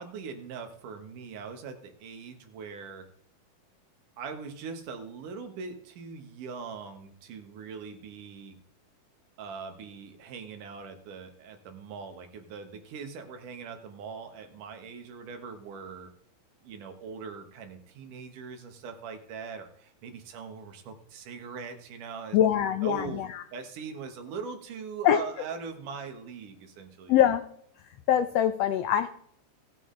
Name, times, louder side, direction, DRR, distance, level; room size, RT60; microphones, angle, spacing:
voice 1, 0.0-3.1 4.2-8.6 9.4-16.1 16.6-22.4 22.8-23.2 23.5-27.2, right 5 dB, 85° right, 6 dB, 2.8 m, -41 dB
voice 2, 22.3-23.4 25.0-25.2 27.1-27.4 28.1-29.1, left 10 dB, 85° left, 9 dB, 1.4 m, -23 dB
16.5 x 7.6 x 3.8 m, 0.66 s
omnidirectional pair, 3.6 m